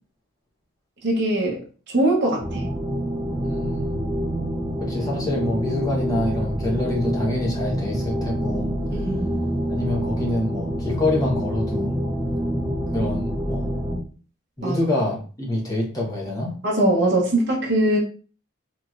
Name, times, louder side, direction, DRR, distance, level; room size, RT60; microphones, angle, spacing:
voice 1, 1.0-2.7 8.9-9.3 14.6-14.8 16.6-18.0, right 1 dB, 60° right, -3 dB, 0.7 m, -21 dB
sound 1, 2.4-14.0, equal, 10° right, 0.4 m, -26 dB
voice 2, 3.4-4.0 4.8-8.7 9.7-12.0 12.9-13.8 14.6-16.5, left 1 dB, 20° left, -2 dB, 0.9 m, -26 dB
3.2 x 2.9 x 2.4 m, 0.39 s
head